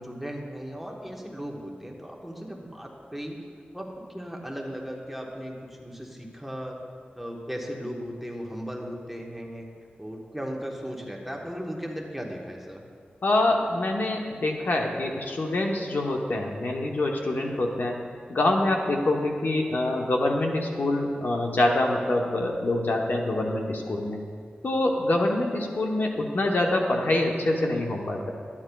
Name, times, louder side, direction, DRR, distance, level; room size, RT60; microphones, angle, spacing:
voice 1, 0.0-3.4 3.7-3.9 4.1-6.8 7.2-9.7 10.0-12.8, equal, 5° right, -1 dB, 1.1 m, -36 dB
voice 2, 13.2-18.0 18.3-24.2 24.6-28.3, left 2 dB, 65° left, 1 dB, 0.9 m, -25 dB
12.0 x 9.8 x 2.3 m, 2.1 s
wide cardioid pair, 90°, 3 cm